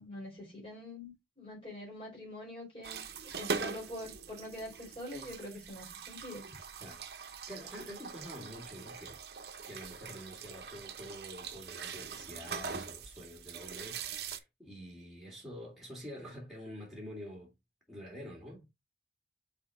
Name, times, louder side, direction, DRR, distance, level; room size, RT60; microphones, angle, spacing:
voice 1, 0.0-6.5, left 1 dB, 30° left, 4.1 m, -45 dB
sound 1, 2.8-14.4, right 5 dB, 65° right, 0.8 m, -42 dB
voice 2, 7.5-9.2 9.7-17.5 17.9-18.6, equal, ahead, 2.1 m, -47 dB
6.0 x 4.5 x 3.5 m
head